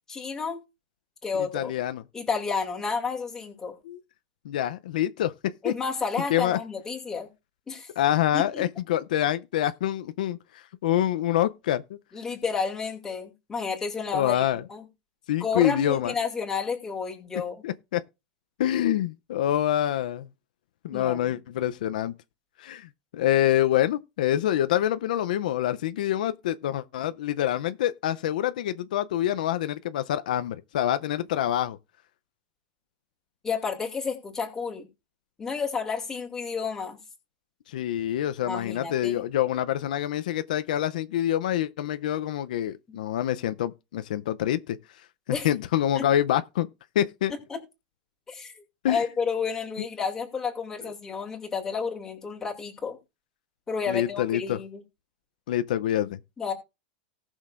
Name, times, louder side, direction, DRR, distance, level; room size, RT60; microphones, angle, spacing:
voice 1, 0.1-0.6 1.2-1.7 2.1-3.7 5.6-7.3 7.7-7.9 8.3-8.6 12.1-14.4 14.7-14.8 15.4-17.5 20.9-21.3 33.4-34.9 35.4-37.0 38.5-39.2 42.9-43.0 45.3-45.5 45.9-46.0 47.5-47.6 48.3-53.0 53.7-54.8 56.4-56.5, left 5 dB, 10° left, 2.4 m, -31 dB
voice 2, 1.5-2.0 3.8-4.0 4.4-5.7 6.3-6.6 8.0-12.0 14.1-14.6 15.3-16.1 17.6-18.0 18.6-20.3 20.8-22.1 22.6-31.8 37.7-44.8 45.3-46.7 46.9-47.3 48.8-49.0 49.8-49.9 53.9-54.6 55.5-56.2, left 12 dB, 75° left, 0.6 m, -26 dB
18.5 x 6.4 x 2.5 m
supercardioid pair, 165°, 4 cm